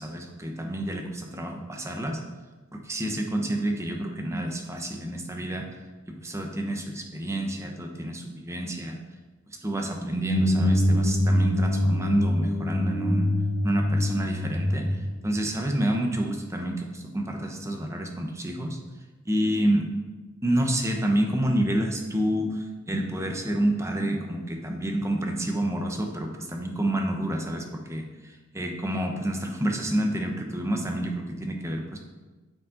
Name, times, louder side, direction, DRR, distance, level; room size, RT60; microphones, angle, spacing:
voice 1, 0.0-2.2 2.9-5.7 6.1-9.0 9.6-13.3 13.6-14.9 15.2-18.8 19.2-19.8 20.4-28.0 28.5-32.0, right 1 dB, 15° right, 3 dB, 0.9 m, -28 dB
sound 1, 9.9-15.9, left 1 dB, 20° left, 1.3 m, -25 dB
9.2 x 5.3 x 3.9 m, 1.2 s
head